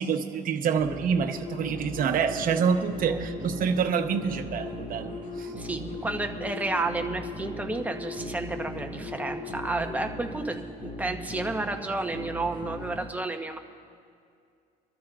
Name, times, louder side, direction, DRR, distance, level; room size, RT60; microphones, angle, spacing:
voice 1, 0.0-5.1 5.4-5.5 5.8-5.9, right 6 dB, 55° right, 5 dB, 1.0 m, -27 dB
sound 1, 0.7-13.1, left 2 dB, 45° left, 2.1 m, -38 dB
voice 2, 3.1-3.7 5.4-13.6, right 2 dB, 10° right, 4 dB, 0.9 m, -32 dB
25.5 x 13.0 x 2.5 m, 2.4 s
cardioid pair, 110°, 17 cm